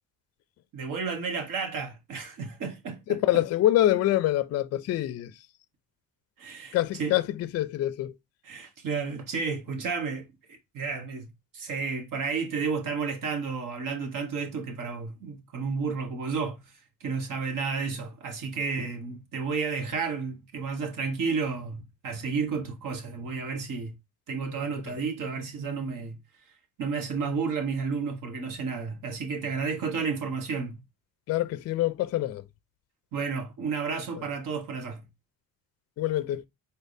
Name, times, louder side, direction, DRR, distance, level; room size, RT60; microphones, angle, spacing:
voice 1, 0.7-3.4 6.4-7.2 8.4-11.3 11.5-16.7 17.0-23.9 24.3-26.2 26.8-30.8 33.1-35.0, right 5 dB, 60° right, 1.3 m, -32 dB
voice 2, 3.1-5.3 6.7-8.1 31.3-32.4 36.0-36.4, left 14 dB, 45° left, 0.4 m, -25 dB
4.2 x 3.4 x 2.6 m
cardioid pair, 165°, 36 cm